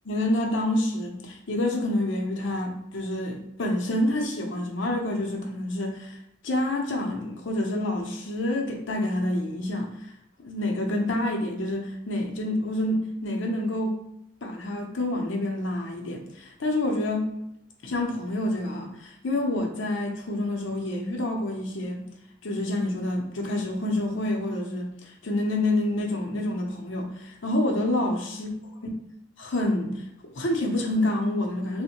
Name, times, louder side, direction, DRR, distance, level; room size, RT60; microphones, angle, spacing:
voice 1, 0.0-6.2 6.4-9.9 10.4-14.0 14.4-17.4 17.8-22.0 22.4-28.5 29.4-30.0 30.3-31.8, left 1 dB, 75° left, 0.7 m, -28 dB
3.4 x 2.1 x 2.9 m
head